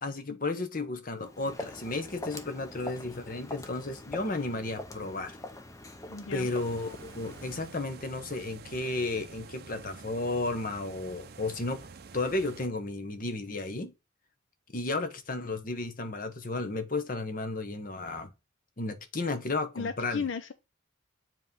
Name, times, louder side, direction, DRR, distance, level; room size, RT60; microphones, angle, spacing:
voice 1, 0.0-5.4 6.3-11.9 12.1-13.9 14.7-18.3 18.8-20.2, left 2 dB, 45° left, 0.9 m, -33 dB
Walk footsteps, 1.2-7.8, left 1 dB, 15° left, 0.6 m, -44 dB
voice 2, 6.1-6.5 19.8-20.5, left 5 dB, 70° left, 0.5 m, -35 dB
sound 1, 6.4-12.7, right 4 dB, 50° right, 0.5 m, -48 dB
7.5 x 3.1 x 5.3 m
head